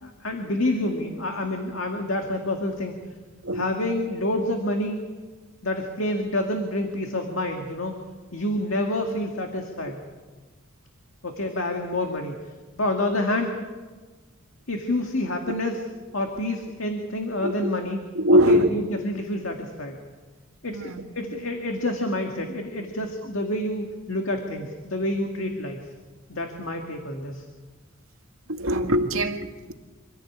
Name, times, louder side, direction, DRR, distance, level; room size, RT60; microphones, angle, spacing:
voice 1, 0.0-2.9 3.5-5.0 5.6-8.0 8.3-10.0 11.2-12.4 12.8-13.5 14.7-15.8 16.1-18.0 18.5-20.0 20.6-25.8 26.3-27.4, left 1 dB, 70° left, 2.2 m, -28 dB
voice 2, 17.4-17.7 18.1-18.7 20.7-21.0 28.5-29.7, equal, 90° right, 2.0 m, -22 dB
26.0 x 16.0 x 8.7 m
head